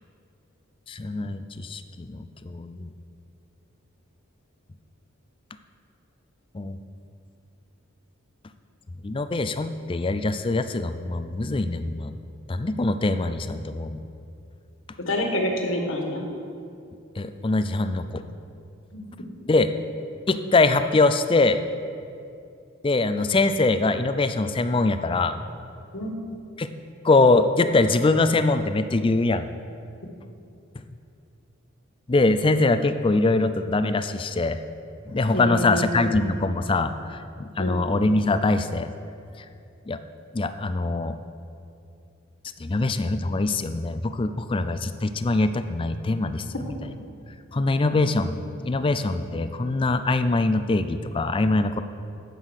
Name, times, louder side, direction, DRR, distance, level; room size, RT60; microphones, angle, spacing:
voice 1, 0.9-2.2 2.4-2.9 6.5-6.8 9.0-12.1 12.5-14.0 17.2-18.2 19.5-19.7 20.3-21.6 22.8-25.4 26.6-26.7 27.0-29.5 32.1-34.6 35.1-38.9 39.9-40.0 40.3-41.1 42.6-46.4 47.5-51.8, left 2 dB, 25° left, 10 dB, 0.4 m, -23 dB
voice 2, 15.1-16.2 18.9-19.0 25.9-26.2 35.3-36.2 37.6-37.8, left 1 dB, 70° left, 2 dB, 1.5 m, -27 dB
9.4 x 8.4 x 6.3 m, 2.6 s
head